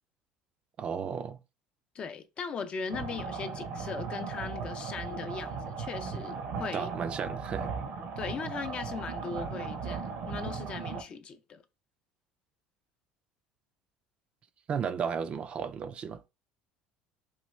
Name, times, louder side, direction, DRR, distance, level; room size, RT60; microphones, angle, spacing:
voice 1, 0.8-1.4 6.7-7.7 14.7-16.2, right 6 dB, 40° right, 0.4 m, -34 dB
voice 2, 1.9-6.9 8.2-11.6, left 5 dB, 40° left, 0.5 m, -39 dB
sound 1, 2.9-11.0, right 5 dB, 70° right, 0.8 m, -37 dB
3.1 x 2.3 x 3.1 m
supercardioid pair, 90°, 3 cm